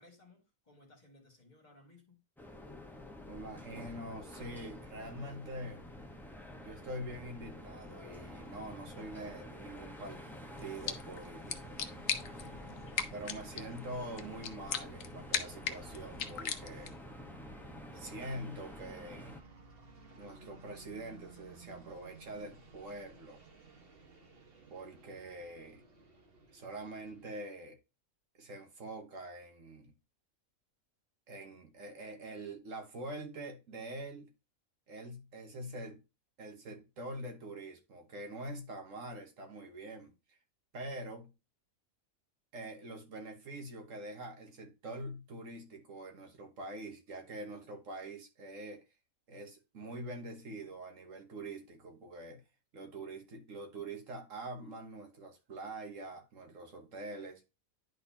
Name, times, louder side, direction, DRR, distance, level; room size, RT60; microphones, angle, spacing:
voice 1, 0.0-2.2 12.2-12.9, left 2 dB, 30° left, 1.8 m, -60 dB
sound 1, 2.4-19.4, left 1 dB, ahead, 0.8 m, -49 dB
voice 2, 3.3-5.8 6.6-10.3 10.6-11.7 13.1-16.9 17.9-19.4 20.1-23.4 24.7-25.8 26.5-27.8 28.4-29.9 31.3-34.3 34.9-36.0 36.4-40.4 40.7-41.3 42.5-48.8 49.3-52.4 52.7-57.4, right 1 dB, 70° right, 1.6 m, -45 dB
sound 2, 8.7-27.3, right 4 dB, 45° right, 1.5 m, -58 dB
sound 3, 10.6-17.1, left 7 dB, 70° left, 1.2 m, -40 dB
10.5 x 4.0 x 2.7 m
omnidirectional pair, 1.4 m